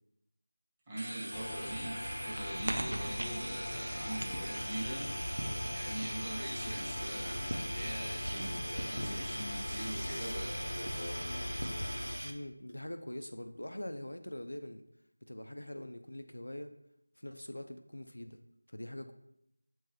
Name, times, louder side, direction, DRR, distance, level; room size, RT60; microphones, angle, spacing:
voice 1, 0.9-5.5 5.7-11.5, right 1 dB, 15° right, -9 dB, 1.5 m, -42 dB
sound 1, 1.0-12.3, right 1 dB, 80° right, 0.8 m, -40 dB
sound 2, 1.3-12.2, left 1 dB, 55° left, 0.7 m, -41 dB
voice 2, 12.2-14.8 15.2-16.8 17.2-18.4 18.7-19.1, left 1 dB, 85° left, 8 dB, 0.5 m, -43 dB
7.8 x 4.5 x 3.1 m, 0.80 s
figure-of-eight pair, 175°, 0 cm